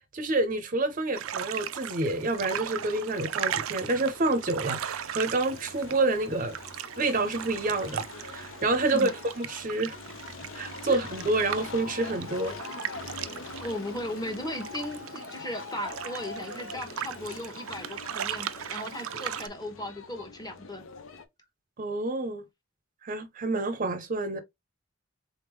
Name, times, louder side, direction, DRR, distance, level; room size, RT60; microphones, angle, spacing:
voice 1, 0.1-6.6 7.0-9.1 9.4-10.0 10.5-12.5 19.1-19.2 21.8-22.4 23.0-24.4, right 2 dB, 40° right, 0.6 m, -28 dB
sound 1, 1.1-19.5, right 10 dB, 90° right, 0.4 m, -38 dB
sound 2, 2.3-21.2, left 4 dB, 75° left, 0.7 m, -44 dB
voice 2, 13.5-20.8, left 1 dB, 20° left, 1.0 m, -36 dB
3.9 x 3.5 x 3.1 m
head